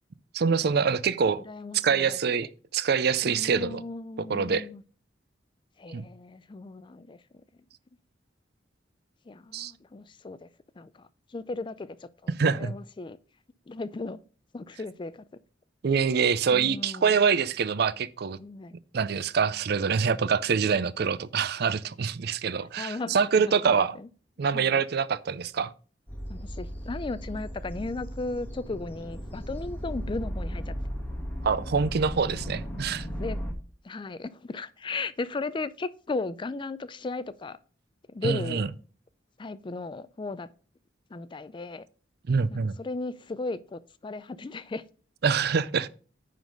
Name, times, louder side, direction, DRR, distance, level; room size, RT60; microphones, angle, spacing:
voice 1, 0.3-1.4 1.8-3.8 4.3-4.6 5.9-6.1 9.5-9.7 12.4-12.7 15.8-18.4 18.9-24.0 24.4-25.7 31.4-33.1 38.2-38.7 42.3-42.8 45.2-45.9, right 6 dB, 60° right, 0.5 m, -25 dB
voice 2, 1.4-2.2 3.2-4.8 5.8-7.2 9.3-10.5 10.8-13.2 13.7-14.2 14.5-15.3 16.5-17.2 18.4-18.8 22.8-24.1 24.5-24.8 26.3-30.8 33.2-33.4 33.8-37.6 38.1-38.6 39.4-40.5 41.1-41.9 42.5-44.8, left 3 dB, 25° left, 0.4 m, -36 dB
sound 1, 26.1-33.5, equal, 10° left, 1.4 m, -36 dB
9.5 x 4.0 x 5.2 m
head